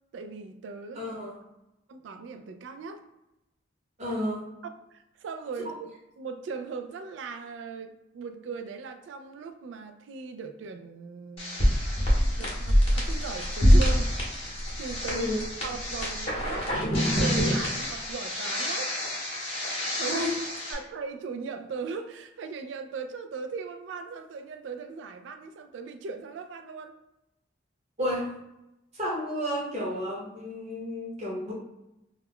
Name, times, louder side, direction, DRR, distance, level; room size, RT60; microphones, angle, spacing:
voice 1, 0.1-1.1 1.9-3.0 4.6-15.3 15.6-18.9 20.0-20.3 20.7-26.9, right 5 dB, 75° right, 7 dB, 0.3 m, -39 dB
voice 2, 0.9-1.4 4.0-4.5 5.6-5.7 15.1-15.5 20.0-20.4 20.7-20.8 28.0-28.4 28.9-31.5, left 1 dB, 35° right, -4 dB, 0.9 m, -31 dB
sound 1, 11.4-20.7, equal, 30° left, 0.8 m, -26 dB
2.3 x 2.1 x 3.5 m, 0.91 s
head